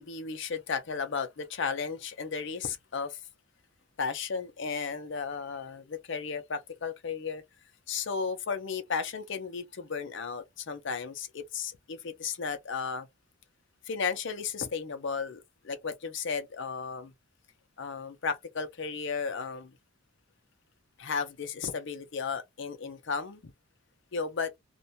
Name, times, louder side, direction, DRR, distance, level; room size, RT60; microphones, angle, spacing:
voice 1, 0.0-3.2 4.0-7.4 7.9-13.1 13.9-17.1 17.8-19.7 21.0-23.5 24.1-24.5, left 5 dB, 55° left, 0.6 m, -34 dB
2.5 x 2.1 x 2.7 m
head